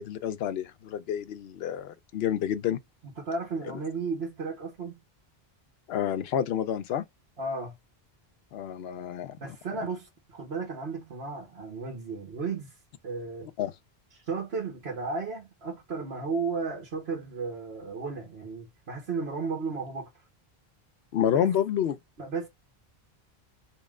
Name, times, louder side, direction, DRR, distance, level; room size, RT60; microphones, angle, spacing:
voice 1, 0.0-2.8 5.9-7.0 8.5-9.6 13.6-13.7 21.1-22.0, left 9 dB, 80° left, 0.8 m, -29 dB
voice 2, 3.2-5.0 7.4-7.7 9.4-12.7 13.0-13.5 14.3-20.1 21.3-21.5 22.2-22.5, right 4 dB, 85° right, 1.5 m, -34 dB
3.1 x 3.1 x 3.5 m
omnidirectional pair, 1.1 m